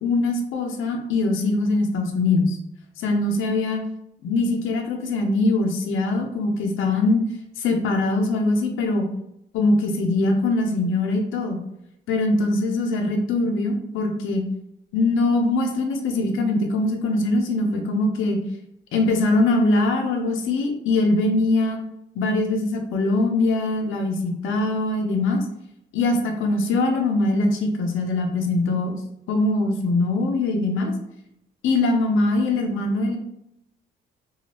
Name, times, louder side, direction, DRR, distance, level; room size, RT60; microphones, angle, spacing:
voice 1, 0.0-2.6 3.0-3.8 4.2-7.2 7.6-9.1 9.5-11.6 12.1-14.4 14.9-18.4 18.9-21.8 22.2-25.4 25.9-28.9 29.3-30.9 31.6-33.2, left 2 dB, 80° left, 2 dB, 0.6 m, -22 dB
2.8 x 2.3 x 2.9 m, 0.81 s
cardioid pair, 90°, 20 cm